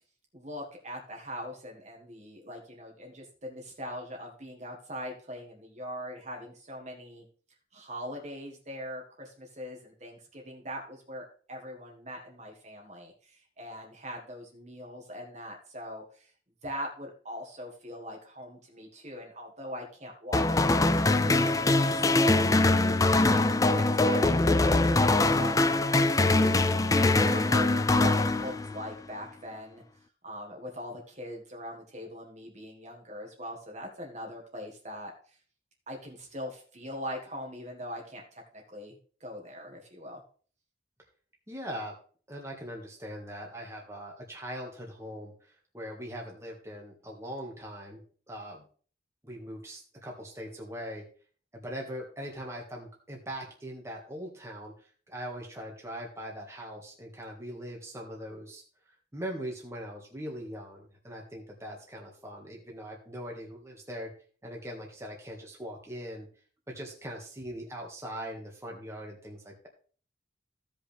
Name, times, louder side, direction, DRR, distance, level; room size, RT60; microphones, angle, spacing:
voice 1, 0.3-7.2 7.7-16.3 16.6-23.0 23.3-23.4 23.7-26.5 26.9-29.8 30.2-35.4 35.9-40.2, equal, 35° right, 0 dB, 1.7 m, -42 dB
sound 1, 20.3-28.9, left 2 dB, 20° left, 0.3 m, -23 dB
voice 2, 41.5-41.9 42.3-48.0 48.3-48.7 49.2-51.0 51.5-58.6 59.1-64.1 64.4-66.3 66.7-69.7, equal, 15° right, -1 dB, 1.8 m, -41 dB
15.5 x 5.3 x 3.4 m, 0.43 s
head